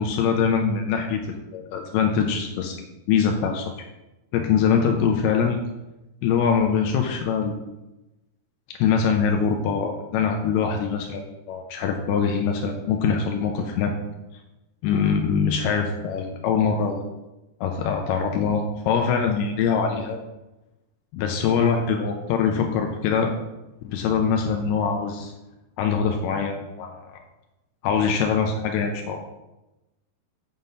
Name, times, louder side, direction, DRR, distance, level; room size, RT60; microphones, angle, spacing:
voice 1, 0.0-2.8 3.1-3.7 4.3-5.6 6.2-7.6 8.8-13.9 14.8-17.0 17.6-20.2 21.1-23.3 23.8-25.3 25.8-27.1 27.8-29.2, left 6 dB, 80° left, 2 dB, 2.7 m, -23 dB
8.3 x 5.8 x 5.3 m, 1.0 s
omnidirectional pair, 4.6 m